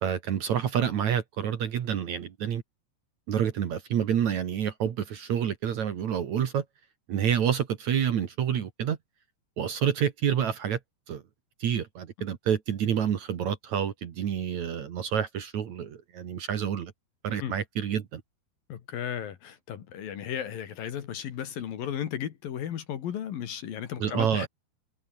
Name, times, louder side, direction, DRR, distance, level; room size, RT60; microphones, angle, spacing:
voice 1, 0.0-2.6 3.3-6.6 7.1-9.0 9.6-10.8 11.1-11.2 11.6-16.9 17.2-18.2 24.0-24.5, right 9 dB, 55° right, 2.3 m, -28 dB
voice 2, 18.7-24.5, left 9 dB, 60° left, 3.4 m, -35 dB
omnidirectional pair, 5.0 m